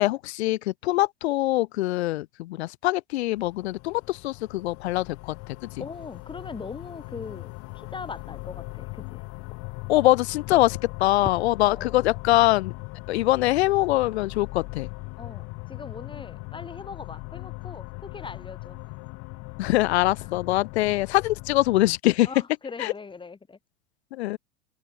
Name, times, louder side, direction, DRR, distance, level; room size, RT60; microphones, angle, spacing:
voice 1, 0.0-5.7 9.9-12.7 13.1-14.9 19.6-22.3 22.8-22.9 24.1-24.4, left 17 dB, 75° left, 2.4 m, -23 dB
sound 1, 3.4-22.0, left 28 dB, 55° left, 3.1 m, -39 dB
voice 2, 5.8-9.2 11.6-12.0 15.2-18.8 20.2-20.3 22.2-23.6, left 4 dB, 15° left, 7.3 m, -41 dB
open air
supercardioid pair, 120°, 33 cm